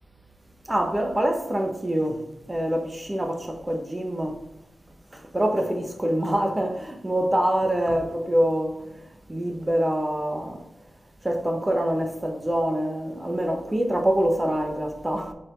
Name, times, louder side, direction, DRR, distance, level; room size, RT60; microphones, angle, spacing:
voice 1, 0.7-4.4 5.1-8.8 9.3-10.6 11.2-15.3, right 1 dB, 20° right, 1.2 m, -25 dB
4.9 x 4.2 x 4.6 m
cardioid pair, 50°, 0 cm